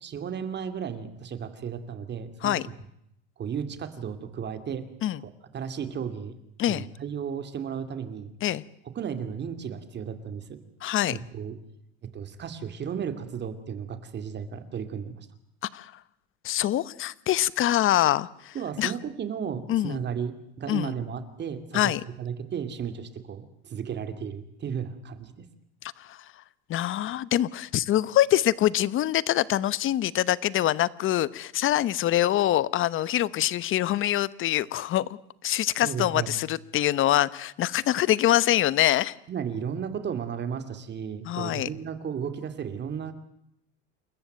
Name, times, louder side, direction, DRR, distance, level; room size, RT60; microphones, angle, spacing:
voice 1, 0.0-2.5 3.4-4.8 5.2-6.3 6.7-8.3 9.0-10.4 11.1-11.5 12.1-15.3 18.5-21.9 22.2-25.4 35.8-36.4 39.3-43.1, right 7 dB, 30° right, 10 dB, 2.4 m, -34 dB
voice 2, 10.8-11.2 15.7-15.9 16.4-18.9 19.7-20.0 20.7-20.9 21.7-22.0 26.0-26.2 26.7-35.1 35.4-39.1 41.3-41.7, left 13 dB, 35° left, 19 dB, 0.9 m, -24 dB
28.5 x 14.5 x 9.2 m, 0.77 s
supercardioid pair, 130°, 34 cm